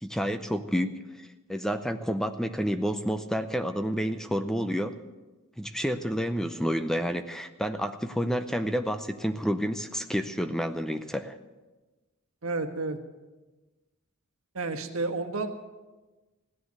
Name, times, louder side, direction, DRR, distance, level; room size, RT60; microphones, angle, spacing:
voice 1, 0.0-4.9 5.6-11.4, equal, ahead, 9 dB, 0.6 m, -29 dB
voice 2, 12.4-13.0 14.5-15.5, right 3 dB, 70° right, 6 dB, 1.5 m, -31 dB
16.5 x 10.5 x 7.9 m, 1.2 s
head